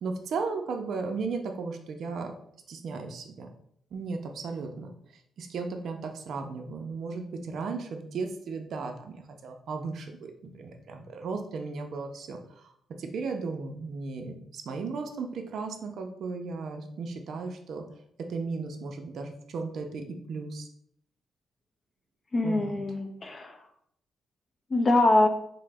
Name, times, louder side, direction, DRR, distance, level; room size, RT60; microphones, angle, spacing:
voice 1, 0.0-2.3 2.7-3.5 3.9-4.9 5.4-12.7 13.0-17.8 18.3-20.7 22.4-22.8, right 4 dB, 60° right, 4 dB, 0.4 m, -35 dB
voice 2, 22.3-23.5 24.7-25.3, left 2 dB, 30° left, 4 dB, 0.5 m, -23 dB
3.7 x 2.0 x 3.3 m, 0.69 s
cardioid pair, 130°, 0 cm